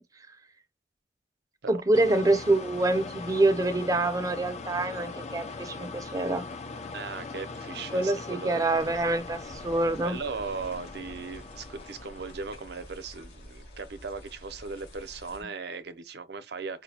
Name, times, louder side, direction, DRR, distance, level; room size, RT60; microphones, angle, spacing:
voice 1, 1.7-6.4 7.9-10.2 15.4-15.5, right 2 dB, 20° right, 0.6 m, -26 dB
sound 1, 1.9-13.1, left 3 dB, 40° left, 0.5 m, -41 dB
voice 2, 6.9-8.6 10.0-16.8, right 4 dB, 65° right, 0.6 m, -38 dB
sound 2, 8.7-15.4, equal, 60° left, 2.5 m, -49 dB
4.9 x 2.2 x 2.8 m
head